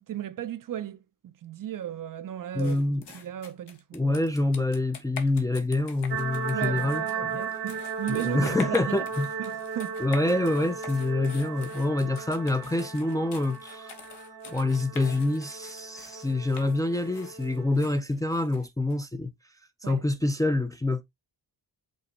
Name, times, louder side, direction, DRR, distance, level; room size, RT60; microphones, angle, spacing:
voice 1, 0.0-2.8 3.1-4.1 6.5-9.0 9.4-10.0 19.8-20.0, right 10 dB, 55° right, 0.4 m, -35 dB
voice 2, 2.5-3.0 3.9-7.4 8.1-9.3 10.0-13.9 14.5-19.3 19.8-21.0, left 2 dB, 10° left, 0.3 m, -26 dB
sound 1, 2.6-19.0, left 6 dB, 80° left, 1.1 m, -46 dB
sound 2, 6.1-17.9, right 6 dB, 90° right, 1.5 m, -36 dB
5.3 x 3.3 x 2.9 m
wide cardioid pair, 120°, 41 cm